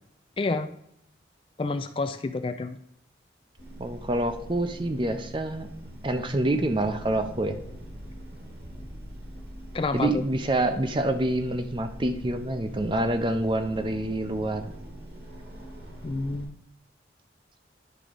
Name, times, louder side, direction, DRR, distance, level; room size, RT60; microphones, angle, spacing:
voice 1, 0.4-0.7 1.6-2.8 9.7-10.2 16.0-16.6, left 3 dB, 30° left, 9 dB, 0.3 m, -29 dB
sound 1, 3.6-16.5, equal, 70° right, 2.0 m, -43 dB
voice 2, 3.8-5.7 6.0-7.6 9.9-14.7, right 1 dB, 25° right, 8 dB, 0.6 m, -27 dB
10.5 x 3.7 x 5.1 m, 0.76 s
head